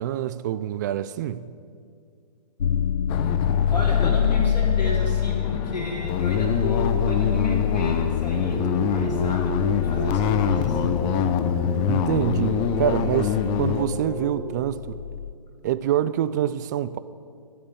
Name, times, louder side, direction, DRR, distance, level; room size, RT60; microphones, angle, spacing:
voice 1, 0.0-1.5 11.9-15.0 15.6-17.0, right 11 dB, 25° right, 0.4 m, -26 dB
sound 1, 2.6-15.3, left 9 dB, 70° left, 0.6 m, -26 dB
sound 2, 3.1-13.8, left 8 dB, 20° left, 0.7 m, -26 dB
voice 2, 3.7-9.5 9.8-10.8, equal, 90° left, 4.8 m, -32 dB
sound 3, 8.4-14.4, right 1 dB, 5° left, 3.7 m, -34 dB
12.5 x 12.5 x 8.4 m
hypercardioid pair, 135°, 21 cm